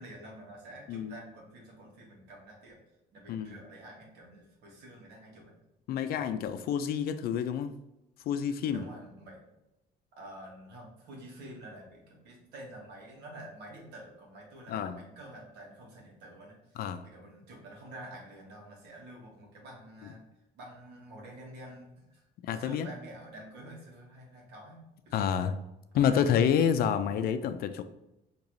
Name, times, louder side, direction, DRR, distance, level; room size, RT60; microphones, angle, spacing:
voice 1, 0.0-2.8 3.1-5.5 8.7-9.4 10.2-16.8 17.1-20.2 20.5-25.4 25.9-26.2, right 1 dB, 75° right, -2 dB, 1.4 m, -48 dB
voice 2, 5.9-7.8 8.3-8.9 14.7-15.0 16.8-17.1 20.0-20.1 22.4-22.9 25.1-25.5 25.9-27.8, left 8 dB, 65° left, 10 dB, 0.4 m, -28 dB
4.6 x 2.9 x 2.6 m, 0.91 s
cardioid pair, 110°, 17 cm